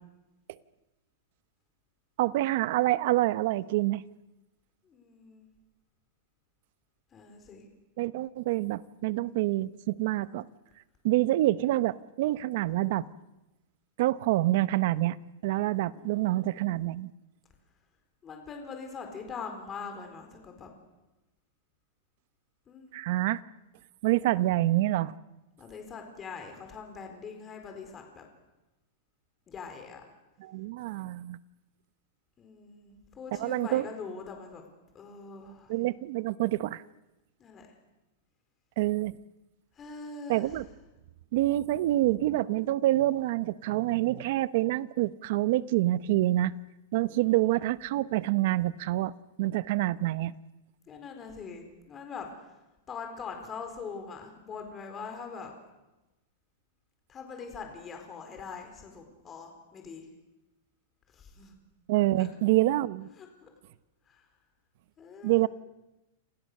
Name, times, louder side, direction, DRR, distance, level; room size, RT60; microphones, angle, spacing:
voice 1, 2.2-4.0 8.0-10.5 11.0-13.1 14.0-15.2 15.4-17.1 22.9-23.4 24.0-25.1 30.4-31.4 33.4-33.8 35.7-36.8 38.8-39.2 40.3-40.6 41.3-46.5 46.9-49.1 49.4-50.3 61.9-63.1 65.2-65.5, right 16 dB, 50° right, 16 dB, 0.9 m, -27 dB
voice 2, 4.8-5.5 7.1-7.7 15.9-16.7 18.2-20.7 22.7-23.0 24.0-24.5 25.6-28.3 29.5-30.0 32.4-34.6 34.9-35.8 37.4-37.7 39.7-40.6 47.1-47.6 50.9-52.6 52.9-55.5 57.1-60.1 61.1-61.6 62.2-62.3 63.2-63.5 64.1-64.3 65.0-65.5, left 5 dB, 15° left, 4 dB, 4.1 m, -43 dB
29.0 x 27.5 x 6.7 m, 1.0 s
supercardioid pair, 170°, 0 cm